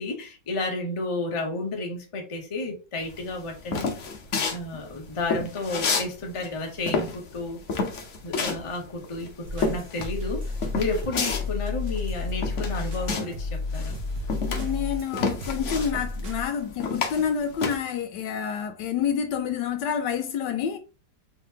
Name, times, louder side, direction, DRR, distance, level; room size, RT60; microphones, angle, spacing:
voice 1, 0.0-3.9 4.5-7.6 8.2-14.0, left 2 dB, 30° left, 0.6 m, -32 dB
sound 1, 3.1-6.1 6.4-13.5 13.7-17.8, left 4 dB, 55° left, 0.9 m, -30 dB
sound 2, 9.4-16.6, left 3 dB, 65° right, 0.6 m, -32 dB
voice 2, 14.4-20.8, left 7 dB, 75° left, 1.2 m, -28 dB
3.8 x 3.7 x 2.8 m
omnidirectional pair, 2.0 m